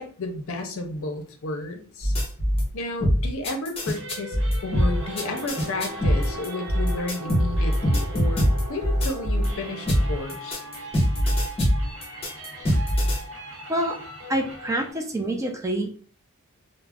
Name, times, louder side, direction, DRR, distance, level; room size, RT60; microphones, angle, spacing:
voice 1, 0.0-2.1 2.7-4.4 4.6-10.6, left 2 dB, 65° left, 5 dB, 0.6 m, -32 dB
sound 1, 2.0-2.6 3.0-9.5 9.9-13.2, equal, 25° left, 0.8 m, -22 dB
sound 2, 3.8-14.9, right 1 dB, 60° right, 1.0 m, -41 dB
sound 3, 4.8-10.2, right 1 dB, 80° right, 0.7 m, -40 dB
voice 2, 14.3-15.9, right 1 dB, 15° right, 3 dB, 0.4 m, -26 dB
2.4 x 2.0 x 3.3 m, 0.42 s
head